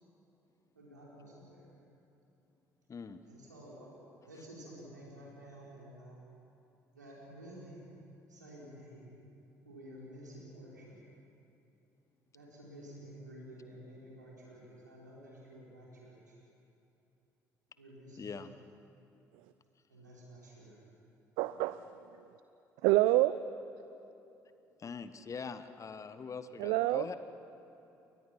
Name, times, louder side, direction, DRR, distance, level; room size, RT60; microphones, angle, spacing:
voice 1, 0.7-1.7 3.3-3.9 4.2-6.2 6.9-7.8 8.3-9.1 9.6-11.0 12.3-16.4 17.8-18.3 19.9-20.8, equal, 80° right, -5 dB, 5.1 m, -51 dB
voice 2, 2.9-3.2 18.2-18.5 24.8-27.2, left 5 dB, 35° left, 11 dB, 1.2 m, -43 dB
voice 3, 21.4-21.8 22.8-23.4 26.6-27.1, right 17 dB, 60° right, 14 dB, 0.5 m, -27 dB
29.5 x 22.5 x 6.0 m, 2.9 s
figure-of-eight pair, 50°, 10 cm